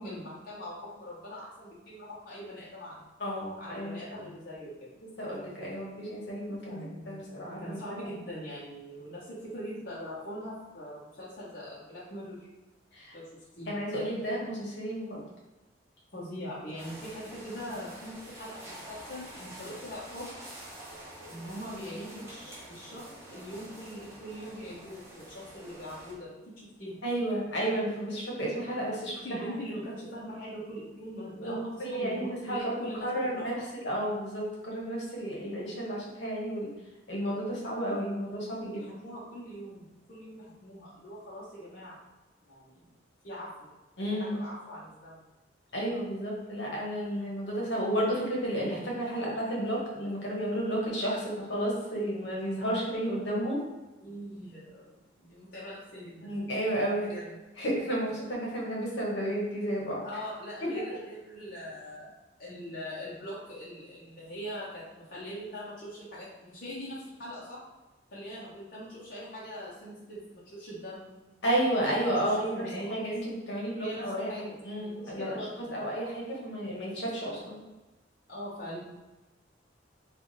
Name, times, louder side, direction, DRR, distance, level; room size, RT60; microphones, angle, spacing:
voice 1, 0.0-3.0 3.6-4.9 6.7-12.5 13.1-13.7 16.1-20.3 21.2-23.0 23.3-27.0 29.2-33.5 38.7-42.0 42.5-42.9 43.2-43.7 44.1-45.2 54.0-56.3 57.0-57.4 60.0-62.1 62.4-67.6 68.1-71.1 72.3-72.9 73.8-74.5 74.8-75.8 78.3-78.8, equal, 50° left, -8 dB, 0.9 m, -42 dB
voice 2, 3.2-4.2 5.2-7.8 12.9-13.1 13.7-15.2 27.0-29.1 31.4-31.5 31.8-32.7 33.0-36.7 37.1-38.8 44.0-44.4 45.7-53.6 56.2-57.1 57.6-60.0 60.6-60.7 71.4-72.5 72.9-74.3 74.6-75.3 75.7-77.6, right 1 dB, 70° left, -3 dB, 1.1 m, -32 dB
sound 1, 16.8-26.1, right 1 dB, 15° right, 0.9 m, -47 dB
3.4 x 2.4 x 3.9 m, 1.1 s
head